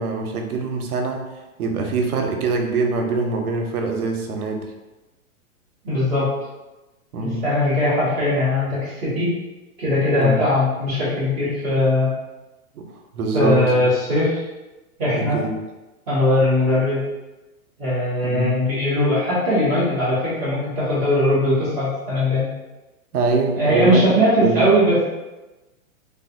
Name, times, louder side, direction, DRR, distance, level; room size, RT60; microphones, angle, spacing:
voice 1, 0.0-4.7 7.1-7.5 10.1-10.5 12.8-12.9 13.1-13.8 15.1-15.5 18.2-18.6 23.1-24.2 24.4-24.7, right 3 dB, 85° right, 3 dB, 0.7 m, -23 dB
voice 2, 5.8-6.3 7.2-9.3 9.8-12.1 13.3-14.4 15.0-15.4 16.1-17.0 17.8-22.5 23.6-25.1, left 1 dB, 10° right, -19 dB, 0.3 m, -20 dB
3.3 x 2.3 x 2.5 m, 1.1 s
hypercardioid pair, 150°, 43 cm